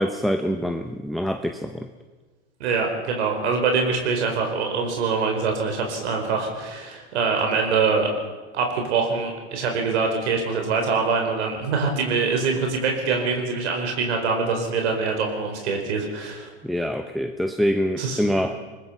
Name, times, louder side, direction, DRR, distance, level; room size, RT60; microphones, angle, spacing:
voice 1, 0.0-1.9 16.6-18.6, equal, ahead, 6 dB, 0.9 m, -25 dB
voice 2, 2.6-8.1 8.5-16.5 18.0-18.6, right 4 dB, 75° right, 3 dB, 4.8 m, -24 dB
22.5 x 20.5 x 5.7 m, 1.3 s
hypercardioid pair, 120°, 34 cm